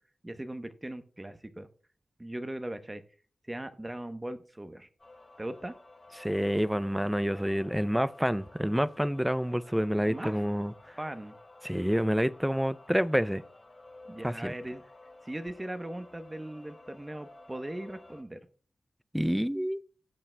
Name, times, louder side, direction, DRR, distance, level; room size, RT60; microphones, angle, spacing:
voice 1, 0.2-1.7 2.2-3.0 3.5-4.9 5.4-5.8 10.1-10.4 11.0-11.4 14.1-14.8 15.2-18.4, right 1 dB, 20° right, 0.9 m, -39 dB
sound 1, 5.0-18.2, left 2 dB, 40° left, 3.9 m, -53 dB
voice 2, 6.2-10.7 11.6-13.4 14.2-14.5 19.1-19.8, equal, 5° right, 0.4 m, -28 dB
17.0 x 8.5 x 2.2 m
cardioid pair, 50°, 0 cm